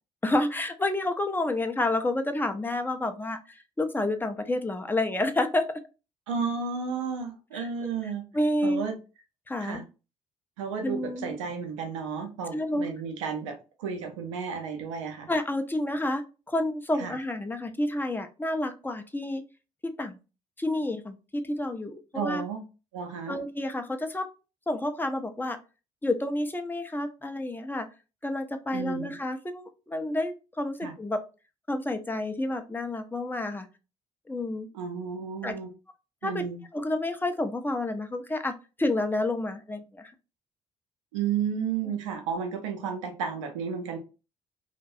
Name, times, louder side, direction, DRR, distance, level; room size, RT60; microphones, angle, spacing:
voice 1, 0.2-5.6 7.5-7.7 8.3-8.8 9.5-9.8 10.8-11.4 12.5-12.9 15.3-19.4 20.0-20.2 20.6-22.4 23.3-24.2 24.7-25.6 26.0-27.9 28.2-31.2 31.7-33.7 34.3-34.7 35.4-35.5 36.2-36.5 36.7-38.5 38.8-40.1, left 1 dB, 15° left, 7 dB, 0.5 m, -29 dB
voice 2, 6.3-8.2 8.6-8.9 9.6-9.8 10.6-15.3 17.0-17.1 22.1-22.6 22.9-23.4 28.7-29.2 30.8-30.9 34.7-35.7 36.2-36.6 41.1-44.0, right 6 dB, 85° right, 4 dB, 0.5 m, -32 dB
2.2 x 2.1 x 2.6 m, 0.31 s
hypercardioid pair, 50°, 15 cm